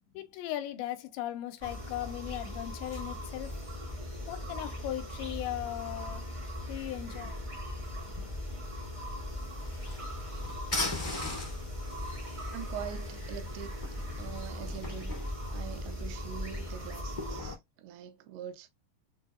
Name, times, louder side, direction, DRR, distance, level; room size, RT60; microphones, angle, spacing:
voice 1, 0.1-3.6 4.3-6.2 6.7-7.4 8.1-8.2, left 13 dB, 85° left, 2.8 m, -38 dB
sound 1, 1.6-17.4, left 1 dB, 30° right, 0.5 m, -39 dB
sound 2, 9.3-17.5, left 3 dB, 50° left, 0.5 m, -41 dB
voice 2, 12.5-13.7 14.2-15.1 15.5-18.7, right 10 dB, 85° right, 2.8 m, -43 dB
6.5 x 2.7 x 2.3 m
omnidirectional pair, 5.0 m